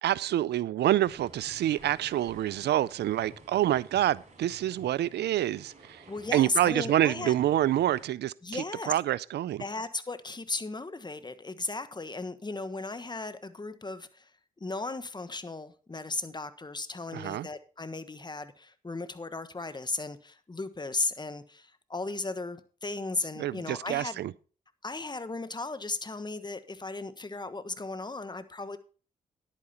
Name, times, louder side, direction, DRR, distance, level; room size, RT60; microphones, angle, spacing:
voice 1, 0.0-6.0 6.3-9.6 17.1-17.5 23.4-24.3, right 13 dB, 85° right, 0.5 m, -27 dB
sound 1, 1.1-8.1, right 2 dB, 45° right, 4.6 m, -52 dB
voice 2, 6.1-7.3 8.4-8.9 9.6-14.3 14.6-24.2 24.8-28.8, left 3 dB, 25° left, 1.3 m, -36 dB
10.5 x 8.8 x 4.2 m
cardioid pair, 55°, 17 cm